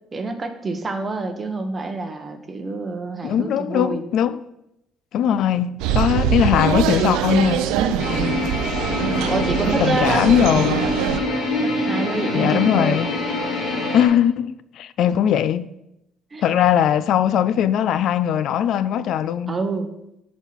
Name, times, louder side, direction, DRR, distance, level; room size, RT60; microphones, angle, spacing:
voice 1, 0.1-4.0 8.0-8.5 9.3-10.3 11.6-13.1 16.3-16.5 19.5-19.9, right 3 dB, 25° right, 1.0 m, -27 dB
voice 2, 3.2-4.4 5.1-7.7 9.8-10.8 12.3-13.1 13.9-15.7 16.4-19.6, left 9 dB, 65° left, 0.3 m, -20 dB
sound 1, 5.8-11.2, right 9 dB, 90° right, 0.5 m, -23 dB
sound 2, 8.0-14.1, left 2 dB, 45° left, 1.8 m, -25 dB
8.0 x 4.2 x 5.7 m
cardioid pair, 110°, 0 cm